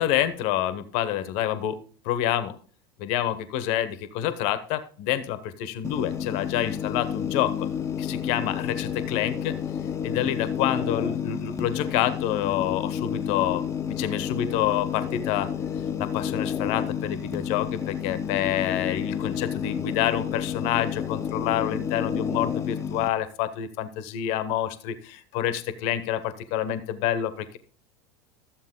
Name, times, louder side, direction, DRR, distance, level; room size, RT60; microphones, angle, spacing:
voice 1, 0.0-2.5 3.0-7.7 8.0-9.6 10.0-13.6 14.0-15.5 16.0-27.6, left 11 dB, 60° left, 13 dB, 1.0 m, -28 dB
sound 1, 5.8-23.1, left 8 dB, 25° left, 0.8 m, -30 dB
12.5 x 7.3 x 3.7 m, 0.42 s
hypercardioid pair, 90°, 12 cm